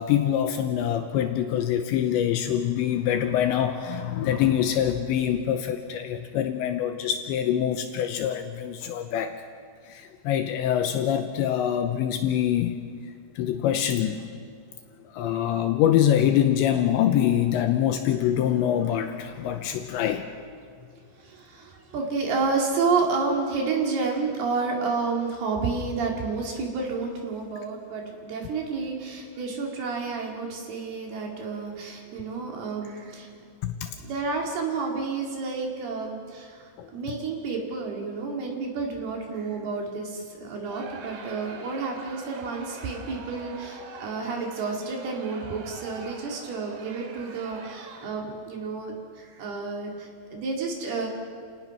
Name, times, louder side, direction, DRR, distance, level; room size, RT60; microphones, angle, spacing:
voice 1, 0.0-9.3 9.9-12.7 13.4-14.2 15.1-20.3 33.6-33.9 36.8-36.9, left 10 dB, 80° left, 7 dB, 2.8 m, -24 dB
voice 2, 21.2-33.3 34.0-51.1, right 4 dB, 55° right, 1 dB, 4.0 m, -30 dB
Crowd, 40.6-48.3, right 4 dB, 90° right, 4.7 m, -44 dB
29.0 x 18.0 x 5.9 m, 2.1 s
omnidirectional pair, 5.8 m